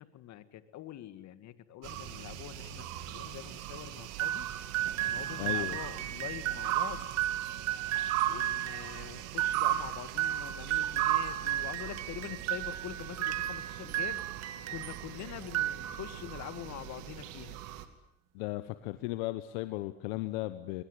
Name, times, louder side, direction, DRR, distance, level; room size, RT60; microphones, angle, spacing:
voice 1, 0.0-4.5 5.0-7.1 8.3-14.2 14.7-17.6, left 13 dB, 60° left, 13 dB, 2.0 m, -45 dB
sound 1, 1.8-17.9, right 13 dB, 75° right, 2.4 m, -38 dB
sound 2, 4.2-15.1 15.4-16.3, right 12 dB, 55° right, 1.7 m, -34 dB
voice 2, 5.4-5.8 18.3-20.8, left 18 dB, 80° left, 12 dB, 1.2 m, -35 dB
24.0 x 20.5 x 9.9 m, 0.84 s
supercardioid pair, 80°, 31 cm